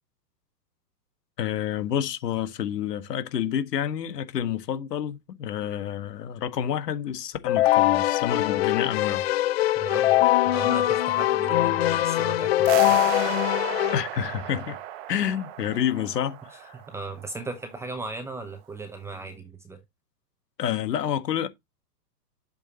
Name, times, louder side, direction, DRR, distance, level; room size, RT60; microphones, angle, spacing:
voice 1, 1.4-9.2 13.9-14.8 15.1-16.7 20.6-21.5, left 9 dB, 75° left, 1.6 m, -29 dB
Keyboard (musical), 7.5-14.0, left 15 dB, 40° left, 0.4 m, -22 dB
voice 2, 9.8-13.0 16.5-19.8, right 3 dB, 5° right, 0.7 m, -37 dB
sound 1, 12.7-17.6, right 12 dB, 40° right, 1.2 m, -35 dB
8.1 x 6.9 x 2.8 m
hypercardioid pair, 145°, 49 cm